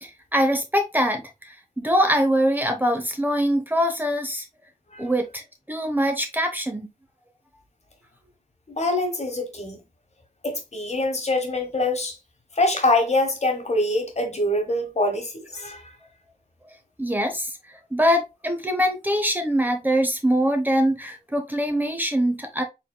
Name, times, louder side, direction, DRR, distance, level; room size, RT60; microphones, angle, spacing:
voice 1, 0.0-4.4 5.0-5.4 5.7-6.9 17.0-17.5 17.9-22.6, equal, 15° right, 0.8 m, -23 dB
voice 2, 8.7-9.8 10.4-12.2 12.6-15.8, left 2 dB, 50° left, 1.2 m, -24 dB
4.4 x 3.8 x 2.2 m
wide cardioid pair, 90°, 14 cm